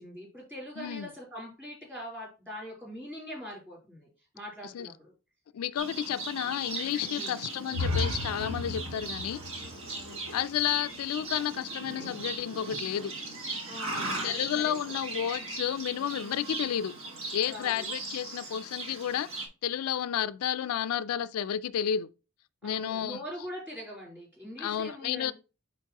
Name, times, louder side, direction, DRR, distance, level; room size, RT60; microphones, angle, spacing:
voice 1, 0.0-4.1 4.3-5.1 7.1-7.3 13.6-14.7 17.5-17.9 22.6-25.3, equal, 10° right, 3.5 m, -42 dB
voice 2, 0.8-1.1 4.7-4.9 5.5-9.4 10.3-13.1 14.2-16.9 17.3-19.3 19.6-22.1 22.6-23.2 24.6-25.3, left 9 dB, 85° left, 0.3 m, -31 dB
Livestock farm animals working animals, 5.8-19.5, right 2 dB, 65° right, 1.6 m, -38 dB
sound 1, 7.7-11.6, left 2 dB, 85° right, 1.1 m, -35 dB
9.1 x 3.9 x 2.9 m
head